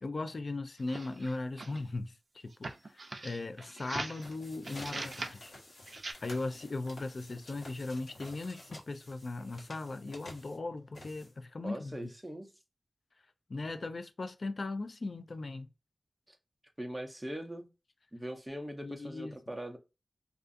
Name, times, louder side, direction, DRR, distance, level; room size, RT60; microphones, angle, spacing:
voice 1, 0.0-5.5 6.2-12.1 13.5-15.7 18.8-19.4, left 2 dB, 60° left, 0.3 m, -38 dB
sound 1, 0.8-1.9 2.5-4.3 4.6-5.4 5.9-6.1, right 3 dB, 60° right, 0.4 m, -41 dB
sound 2, 4.1-11.6, left 1 dB, 85° left, 1.1 m, -51 dB
voice 2, 11.6-12.5 16.3-16.4 16.8-17.7 18.1-19.8, equal, 10° right, 0.6 m, -41 dB
2.4 x 2.3 x 2.5 m
wide cardioid pair, 90°, 0 cm